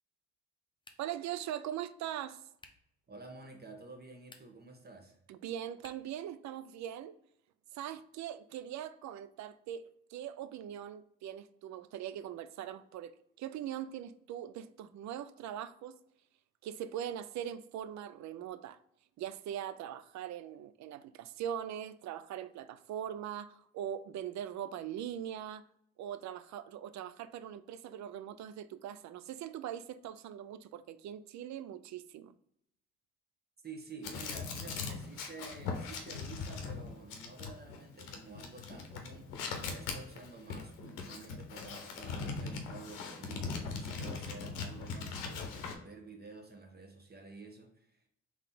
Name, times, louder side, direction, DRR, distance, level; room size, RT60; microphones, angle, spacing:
sound 1, 0.8-1.3 2.6-2.9 4.2-4.7 5.8-6.2, left 2 dB, 15° left, 0.7 m, -58 dB
voice 1, 1.0-2.4 5.3-7.1 7.7-16.0 16.6-18.8 19.2-25.6 26.0-32.3, right 10 dB, 60° right, 0.4 m, -41 dB
voice 2, 3.1-5.2 33.6-48.0, right 3 dB, 30° right, 1.2 m, -50 dB
sound 2, 34.0-45.7, left 4 dB, 80° left, 0.7 m, -40 dB
3.7 x 3.0 x 3.6 m
hypercardioid pair, 40°, 31 cm